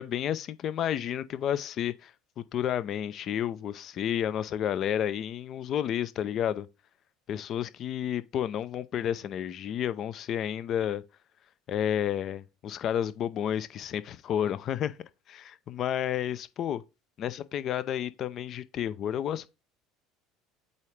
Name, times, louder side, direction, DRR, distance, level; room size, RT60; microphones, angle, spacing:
voice 1, 0.0-2.1 2.5-6.7 7.3-11.0 11.7-15.0 15.3-16.8 17.2-19.5, left 10 dB, 45° left, 0.6 m, -31 dB
8.2 x 3.7 x 3.3 m
hypercardioid pair, 70°, 0 cm